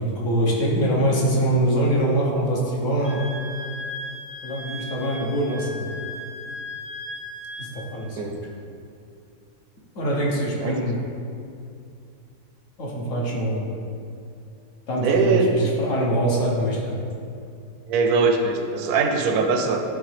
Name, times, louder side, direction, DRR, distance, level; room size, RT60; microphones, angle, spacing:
voice 1, 0.0-3.2 4.4-5.9 7.6-8.4 10.0-11.0 12.8-13.7 14.9-16.9, right 1 dB, 60° left, -4 dB, 1.3 m, -24 dB
Wind instrument woodwind instrument, 3.0-7.8, left 1 dB, 35° left, 0.8 m, -36 dB
voice 2, 10.6-10.9 15.0-15.7 17.9-19.8, right 4 dB, 85° right, 4 dB, 1.1 m, -21 dB
9.1 x 3.3 x 3.3 m, 2.5 s
omnidirectional pair, 1.6 m